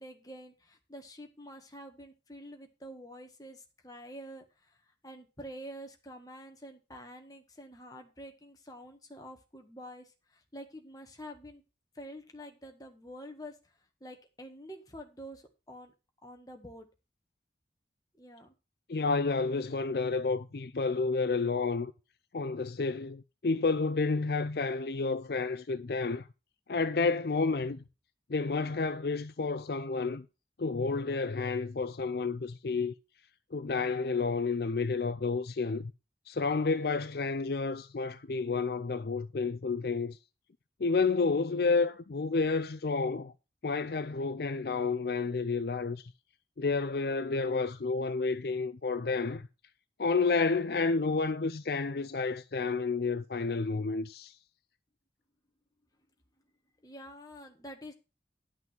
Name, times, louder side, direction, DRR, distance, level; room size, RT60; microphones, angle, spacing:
voice 1, 0.0-4.4 5.0-11.6 11.9-13.5 14.0-15.9 16.2-16.9 18.2-18.5 56.8-57.9, equal, 20° left, 1.7 m, -47 dB
voice 2, 18.9-21.9 22.3-26.3 26.7-27.8 28.3-30.3 30.6-32.9 33.5-35.9 36.3-40.2 40.8-43.3 43.6-46.1 46.6-49.5 50.0-54.4, left 4 dB, 60° left, 0.5 m, -30 dB
11.0 x 6.0 x 5.9 m
head